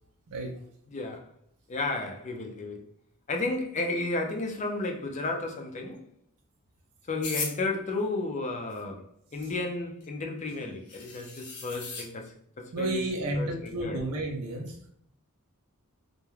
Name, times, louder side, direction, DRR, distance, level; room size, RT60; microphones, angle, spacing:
voice 1, 0.9-1.3 1.7-2.8 3.3-6.0 7.1-9.1 9.3-13.0 13.4-14.0, left 2 dB, 30° left, 0.4 m, -33 dB
sound 1, 7.2-7.6 10.0-10.1 10.5-10.6 10.9-12.1, left 3 dB, 80° left, 0.7 m, -36 dB
voice 2, 12.7-14.8, right 1 dB, 85° right, 0.5 m, -31 dB
2.3 x 2.1 x 3.1 m
head